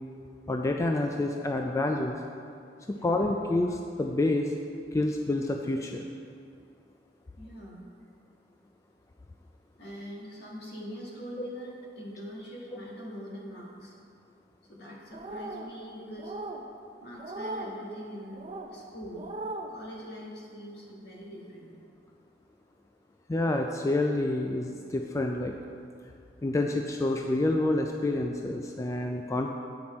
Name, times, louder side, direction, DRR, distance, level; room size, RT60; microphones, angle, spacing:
voice 1, 0.5-2.1 2.9-4.5 4.9-6.1 11.4-11.5 23.3-25.5 26.4-29.5, left 2 dB, 15° left, 3 dB, 0.3 m, -28 dB
voice 2, 2.8-3.2 7.4-7.9 9.8-14.0 14.7-16.4 17.0-19.3 19.7-21.7, equal, 65° left, -3 dB, 1.6 m, -43 dB
sound 1, 15.1-15.7 16.2-16.6 17.2-17.7 18.3-18.7 19.2-19.7, right 2 dB, 35° right, 0.5 m, -38 dB
8.8 x 5.9 x 4.2 m, 2.4 s
head